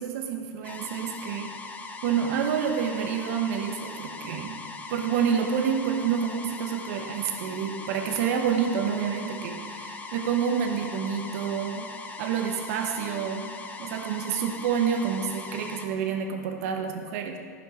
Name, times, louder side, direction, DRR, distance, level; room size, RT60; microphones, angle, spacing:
voice 1, 0.0-1.5 2.0-4.6 4.9-11.9 12.2-13.5 13.8-17.4, right 7 dB, 65° right, 5 dB, 0.9 m, -28 dB
sound 1, 0.6-15.9, left 3 dB, 15° left, 1.0 m, -40 dB
14.5 x 5.7 x 5.8 m, 2.1 s
hypercardioid pair, 120°, 9 cm